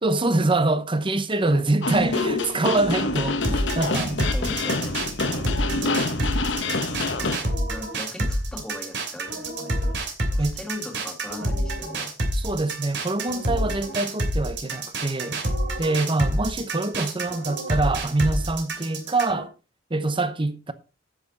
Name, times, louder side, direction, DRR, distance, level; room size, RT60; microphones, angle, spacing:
voice 1, 0.0-4.3 10.4-10.6 12.3-15.4 15.8-19.5 19.9-20.7, right 2 dB, 25° right, 0.9 m, -25 dB
voice 2, 1.3-1.7 4.3-5.0 5.7-6.0 6.9-9.9 10.3-12.1, left 1 dB, 5° left, 2.3 m, -39 dB
sound 1, 1.8-7.4, left 3 dB, 65° left, 1.3 m, -26 dB
sound 2, 3.4-19.4, right 1 dB, 65° right, 2.9 m, -27 dB
10.0 x 8.8 x 4.1 m
head